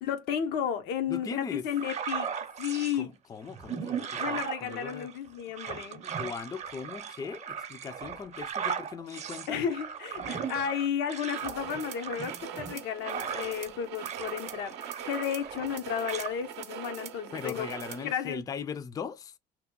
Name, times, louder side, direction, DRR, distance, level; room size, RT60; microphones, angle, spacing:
voice 1, 0.0-2.3 2.6-3.1 4.2-6.0 9.5-17.7 18.0-18.4, left 8 dB, 85° left, 0.6 m, -33 dB
voice 2, 1.1-1.7 2.9-5.1 6.2-9.6 17.3-19.4, left 6 dB, 20° left, 0.3 m, -39 dB
sound 1, 1.7-3.0 3.5-13.7 14.0-15.8 16.0-16.3, right 7 dB, 40° right, 0.5 m, -37 dB
sound 2, 11.3-18.1, right 9 dB, 85° right, 0.5 m, -42 dB
2.8 x 2.1 x 3.6 m
cardioid pair, 110°, 17 cm